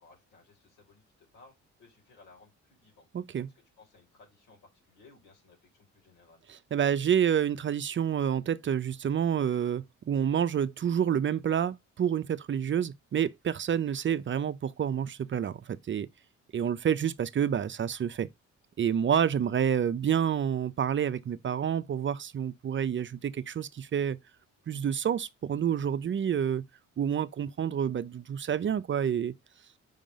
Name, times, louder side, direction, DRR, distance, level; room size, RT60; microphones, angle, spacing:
voice 1, 0.0-1.5 1.8-3.1 3.5-6.4, left 3 dB, 85° left, 4.0 m, -59 dB
voice 2, 3.1-3.5 6.5-16.1 16.5-18.3 18.8-24.2 24.7-26.6 27.0-29.3, right 8 dB, 40° right, 0.6 m, -28 dB
5.5 x 3.8 x 5.1 m
cardioid pair, 90°, 30 cm